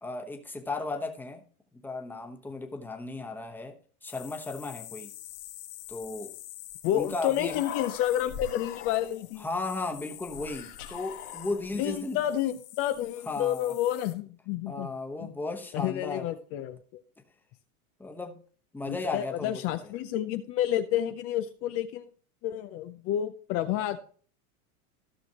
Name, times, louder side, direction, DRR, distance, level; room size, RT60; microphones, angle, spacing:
voice 1, 0.0-1.4 1.7-3.8 4.0-5.1 5.9-6.3 6.9-7.6 9.4-12.2 13.3-13.7 14.7-16.3 18.0-18.4 18.7-19.6, left 3 dB, 5° left, 1.0 m, -35 dB
sound 1, 4.0-14.1, left 15 dB, 60° left, 1.6 m, -47 dB
voice 2, 6.8-9.4 11.7-14.9 15.2-15.3 15.7-17.0 18.9-22.1 22.4-24.0, left 12 dB, 35° left, 0.5 m, -30 dB
Human voice, 7.0-7.1 7.3-9.4 10.3-12.0, left 8 dB, 85° left, 1.6 m, -42 dB
15.0 x 6.1 x 2.9 m
supercardioid pair, 140°, 44 cm